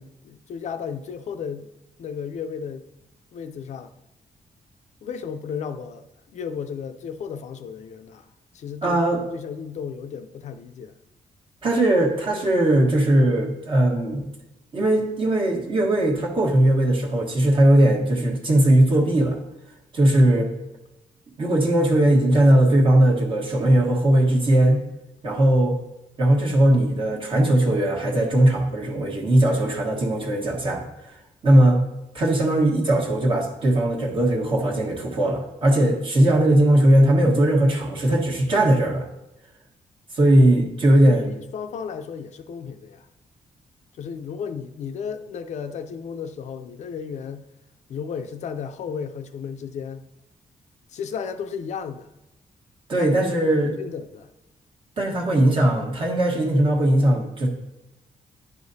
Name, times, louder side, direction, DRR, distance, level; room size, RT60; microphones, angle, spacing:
voice 1, 0.0-1.7 2.0-2.8 3.3-3.9 5.0-6.1 6.3-8.3 8.5-10.9 40.9-43.1 44.0-47.4 47.9-50.1 50.9-52.1 53.0-54.3, left 6 dB, 60° left, 0.4 m, -34 dB
voice 2, 8.8-9.2 11.6-14.2 14.7-19.4 19.9-20.5 21.4-24.8 25.2-25.8 26.2-30.8 31.4-31.8 32.1-39.1 40.1-41.3 52.9-53.7 55.0-57.5, right 1 dB, 40° right, 1.3 m, -19 dB
10.5 x 4.9 x 2.7 m
wide cardioid pair, 160°, 13 cm